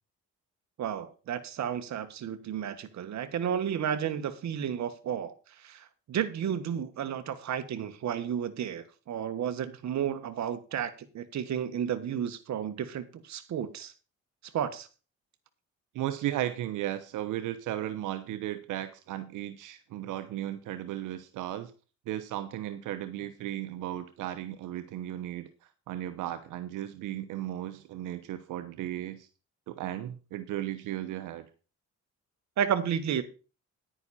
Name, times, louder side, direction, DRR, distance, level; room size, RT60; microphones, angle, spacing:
voice 1, 0.8-5.3 5.6-13.9 14.5-14.9 32.6-33.2, right 9 dB, 65° right, 1.5 m, -32 dB
voice 2, 15.9-21.7 22.1-25.5 25.9-29.3 29.7-31.5, right 13 dB, 90° right, 1.0 m, -35 dB
10.0 x 9.7 x 4.2 m
cardioid pair, 90°, 30 cm